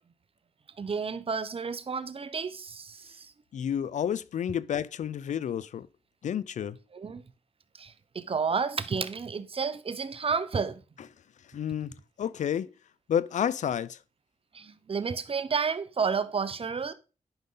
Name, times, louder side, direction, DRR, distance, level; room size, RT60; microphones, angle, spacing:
voice 1, 0.8-3.3 6.9-7.2 7.8-10.8 14.5-16.9, right 5 dB, 45° right, 0.8 m, -31 dB
voice 2, 3.5-5.9 6.2-6.8 11.5-12.7 13.1-14.0, left 9 dB, 70° left, 0.5 m, -30 dB
11.0 x 5.3 x 3.9 m
cardioid pair, 55°, 13 cm